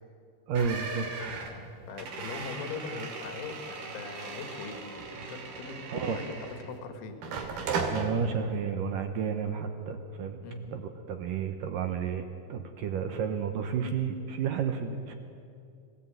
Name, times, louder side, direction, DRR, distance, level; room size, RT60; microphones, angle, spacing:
voice 1, 0.5-1.1 5.9-6.2 7.9-10.4 10.7-15.1, right 6 dB, 80° right, 7 dB, 1.9 m, -31 dB
sound 1, 0.6-6.8 7.2-8.1, right 4 dB, 60° right, 4.0 m, -37 dB
voice 2, 1.9-7.2 10.4-10.9, left 4 dB, 85° left, 7 dB, 4.2 m, -41 dB
25.0 x 17.5 x 9.0 m, 2.5 s
omnidirectional pair, 5.4 m